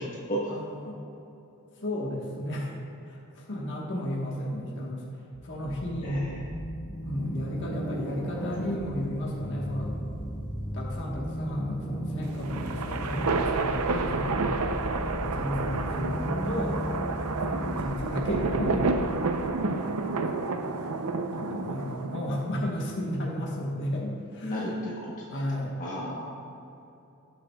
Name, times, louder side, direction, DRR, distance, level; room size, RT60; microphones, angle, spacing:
voice 1, 0.5-1.0 1.8-2.7 3.1-5.0 5.4-6.3 7.0-10.0 10.7-14.6 15.2-16.8 17.5-19.0 19.6-20.1 21.3-24.7 25.3-25.7, left 1 dB, 55° left, -3 dB, 1.3 m, -33 dB
sound 1, 5.4-19.1, equal, 5° left, 0.9 m, -35 dB
voice 2, 6.0-6.5 8.4-8.5 24.0-24.1 24.4-25.1 25.8-26.4, equal, 35° left, -5 dB, 1.2 m, -33 dB
sound 2, 12.2-22.7, right 3 dB, 70° right, 0.6 m, -30 dB
16.5 x 7.5 x 2.3 m, 2.8 s
head